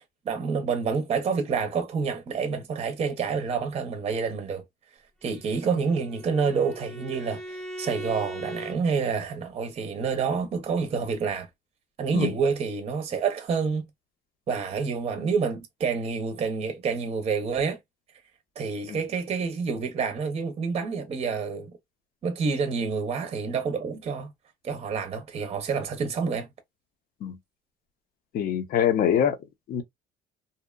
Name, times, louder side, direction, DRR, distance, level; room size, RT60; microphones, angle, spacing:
voice 1, 0.0-4.6 5.2-11.5 12.0-13.9 14.5-17.8 18.6-21.7 22.2-24.3 24.6-26.5, right 5 dB, 35° right, 0.6 m, -28 dB
Bowed string instrument, 5.3-8.8, right 1 dB, 5° left, 0.8 m, -39 dB
voice 2, 28.3-29.4 29.7-29.8, left 9 dB, 60° left, 0.6 m, -24 dB
2.8 x 2.1 x 2.2 m
cardioid pair, 110°, 17 cm